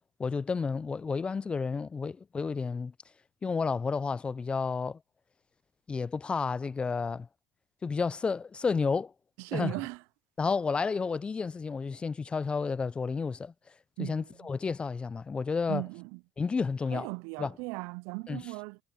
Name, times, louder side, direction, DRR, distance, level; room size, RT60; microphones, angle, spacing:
voice 1, 0.2-2.9 3.4-5.0 5.9-7.3 7.8-9.1 9.5-9.7 10.4-15.8 16.4-17.1 17.4-17.5 18.3-18.4, left 5 dB, 20° left, 0.5 m, -31 dB
voice 2, 9.4-10.0 14.0-14.5 15.7-16.2 16.9-18.8, right 29 dB, 70° right, 0.3 m, -37 dB
supercardioid pair, 100°, 5 cm